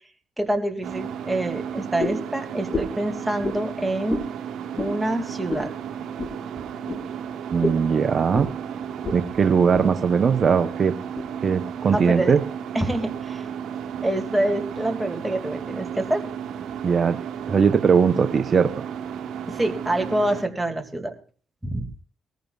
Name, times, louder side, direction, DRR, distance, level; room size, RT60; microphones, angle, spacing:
voice 1, 0.4-4.2 4.8-5.7 11.9-12.4 12.7-13.5 14.0-16.3 19.5-21.1 21.6-21.9, right 1 dB, 10° right, 4 dB, 2.2 m, -26 dB
sound 1, 0.8-20.4, right 8 dB, 75° right, 1.2 m, -34 dB
sound 2, 2.0-2.3 2.7-3.0 3.4-3.6 4.1-4.3 4.7-5.0 5.5-5.7 6.2-6.4 6.9-7.0 7.6-7.8 8.3-8.5 9.0-9.2 9.5-9.9 10.4-10.5 11.2-11.3, left 2 dB, 35° left, 1.9 m, -29 dB
voice 2, 7.5-8.5 9.1-10.9 11.4-12.4 16.8-17.2 17.5-18.8, right 6 dB, 50° right, 8 dB, 0.8 m, -20 dB
21.0 x 14.5 x 2.4 m, 0.42 s
cardioid pair, 70°, 0 cm